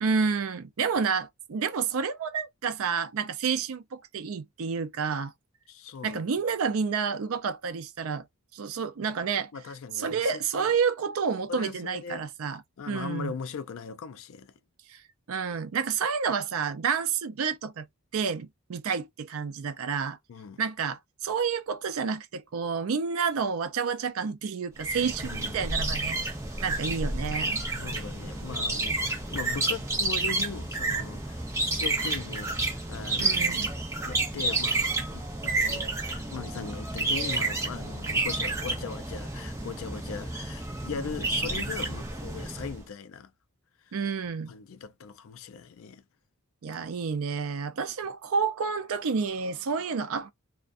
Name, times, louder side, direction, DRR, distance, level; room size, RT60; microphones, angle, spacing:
voice 1, 0.0-5.3 6.0-8.3 8.5-9.5 9.9-13.3 14.9-15.0 15.3-17.9 18.1-20.2 20.6-26.2 26.6-27.6 33.2-33.7 43.9-44.5 46.6-50.3, right 5 dB, 75° right, 0.4 m, -29 dB
voice 2, 5.7-6.3 9.5-10.7 11.5-12.3 12.8-14.5 20.3-20.6 25.2-25.6 27.7-33.4 34.0-43.3 44.5-46.0, left 5 dB, 70° left, 0.4 m, -39 dB
sound 1, 24.8-42.8, right 2 dB, 15° right, 0.5 m, -30 dB
2.4 x 2.2 x 2.4 m
head